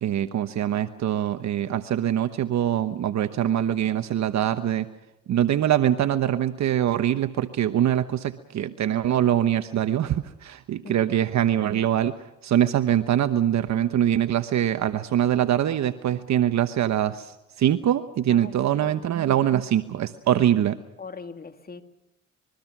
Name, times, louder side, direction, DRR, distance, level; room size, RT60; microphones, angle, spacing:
voice 1, 0.0-4.9 5.3-12.1 12.4-20.8, right 11 dB, 65° right, 10 dB, 1.1 m, -23 dB
voice 2, 18.3-18.9 21.0-21.8, left 4 dB, 30° left, 8 dB, 2.2 m, -41 dB
26.5 x 22.5 x 6.0 m, 0.94 s
cardioid pair, 90°, 30 cm